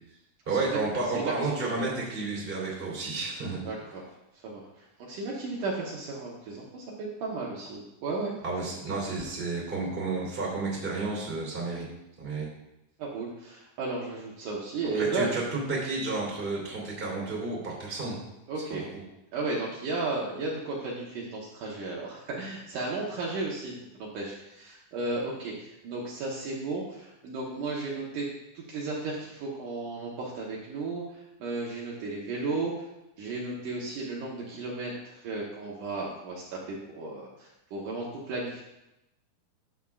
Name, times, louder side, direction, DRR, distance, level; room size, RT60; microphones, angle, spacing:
voice 1, 0.5-3.6 8.4-11.9 12.2-12.5 14.9-18.1 18.7-18.9, right 3 dB, 15° right, -4 dB, 2.7 m, -31 dB
voice 2, 1.1-1.6 3.6-4.0 4.4-4.7 5.1-8.3 13.0-15.3 18.5-18.8 19.3-28.3 28.5-31.0 31.4-32.8 33.2-38.6, right 3 dB, 70° right, -4 dB, 2.5 m, -34 dB
12.5 x 8.2 x 2.4 m, 0.90 s
omnidirectional pair, 4.2 m